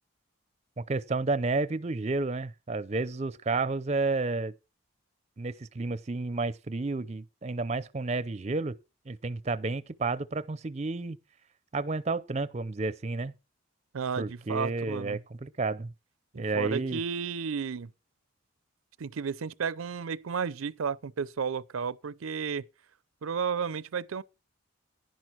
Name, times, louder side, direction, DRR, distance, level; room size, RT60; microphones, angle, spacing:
voice 1, 0.8-4.5 5.4-8.8 9.1-11.2 11.7-13.3 14.2-15.9 16.3-17.0, right 3 dB, 30° right, 0.5 m, -31 dB
voice 2, 13.9-15.2 16.3-17.9 19.0-22.6 23.2-24.2, right 6 dB, 85° right, 0.5 m, -33 dB
11.0 x 10.5 x 4.5 m
head